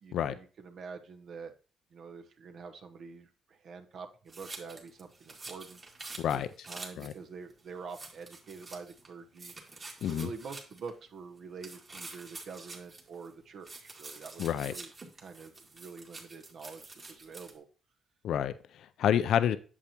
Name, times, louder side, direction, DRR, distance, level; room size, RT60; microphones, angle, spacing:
voice 1, 0.0-1.5 1.9-9.5 10.0-14.9 15.2-17.6, right 5 dB, 65° right, 6 dB, 1.0 m, -46 dB
sound 1, 4.3-7.2 7.5-7.6 7.9-9.1 9.4-10.9 11.6-13.3 13.6-17.5, right 3 dB, 35° right, 1.9 m, -47 dB
voice 2, 6.2-6.5 7.0-7.1 10.0-10.3 14.4-14.7 18.2-19.6, left 9 dB, 75° left, 13 dB, 0.4 m, -29 dB
8.4 x 7.3 x 2.9 m, 0.38 s
cardioid pair, 90°, 0 cm